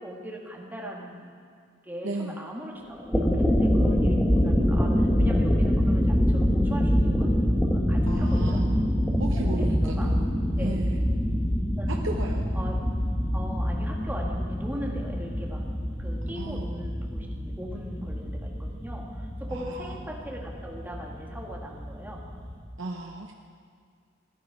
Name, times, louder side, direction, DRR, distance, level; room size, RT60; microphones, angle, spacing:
voice 1, 0.0-1.4 1.8-7.4 7.7-8.7 9.3-10.1 10.6-10.7 11.8-12.1 12.5-12.8 13.3-15.7 16.0-22.3, equal, 10° right, -1 dB, 1.8 m, -39 dB
voice 2, 2.0-2.4 8.1-8.8 9.2-10.3 10.6-11.0 11.9-12.5 16.3-16.7 19.5-20.0 22.8-23.3, right 2 dB, 75° right, 1 dB, 0.9 m, -35 dB
sound 1, 2.9-22.6, equal, 5° left, 1.4 m, -25 dB
16.0 x 11.5 x 4.8 m, 2.2 s
head